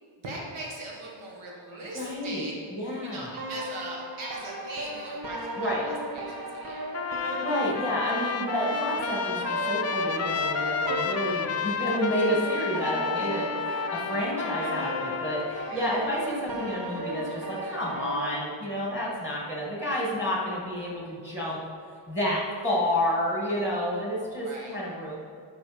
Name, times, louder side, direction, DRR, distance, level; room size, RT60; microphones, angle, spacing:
voice 1, 0.2-2.5 3.0-5.8 6.1-6.8 15.5-16.0 24.4-24.8, right 1 dB, 70° right, -3 dB, 1.9 m, -40 dB
voice 2, 1.9-3.3 5.6-5.9 7.2-21.6 22.1-25.2, equal, 5° right, -4 dB, 2.0 m, -30 dB
sound 1, 3.4-18.4, right 1 dB, 45° right, 1.1 m, -36 dB
Trumpet, 6.9-15.7, left 6 dB, 35° left, 0.4 m, -31 dB
11.0 x 5.6 x 5.2 m, 2.3 s
wide cardioid pair, 135°, 50 cm